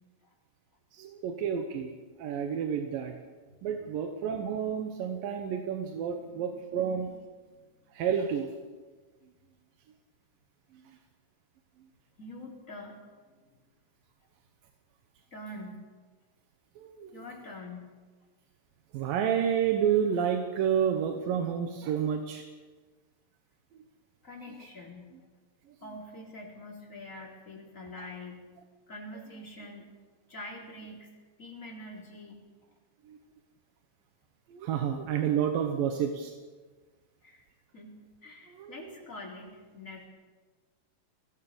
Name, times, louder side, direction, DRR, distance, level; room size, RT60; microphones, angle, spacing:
voice 1, 0.9-3.1 3.6-7.1 7.9-8.8 16.8-17.2 18.9-22.4 33.1-33.2 34.5-36.3 38.5-38.9, right 8 dB, 90° right, 5 dB, 2.9 m, -30 dB
voice 2, 6.2-8.0 12.2-13.0 13.3-13.4 15.3-15.9 17.1-17.9 24.2-25.1 25.8-28.5 28.9-29.9 30.3-31.1 31.4-32.4 37.2-37.4 37.7-40.1, left 1 dB, 20° left, -2 dB, 4.5 m, -45 dB
22.5 x 17.5 x 7.0 m, 1.4 s
omnidirectional pair, 3.9 m